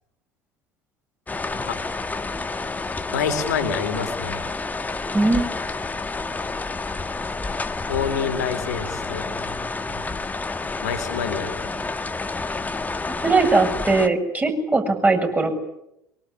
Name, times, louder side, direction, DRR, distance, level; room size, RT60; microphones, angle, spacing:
sound 1, 1.3-14.1, left 3 dB, 15° left, 2.0 m, -29 dB
voice 1, 3.1-4.5 7.9-9.6 9.9-10.0 10.8-11.7, left 6 dB, 75° left, 8 dB, 3.9 m, -27 dB
voice 2, 5.1-5.5 13.2-15.5, right 3 dB, 15° right, 5 dB, 7.4 m, -20 dB
24.5 x 24.0 x 9.9 m, 0.82 s
figure-of-eight pair, 65°, 9 cm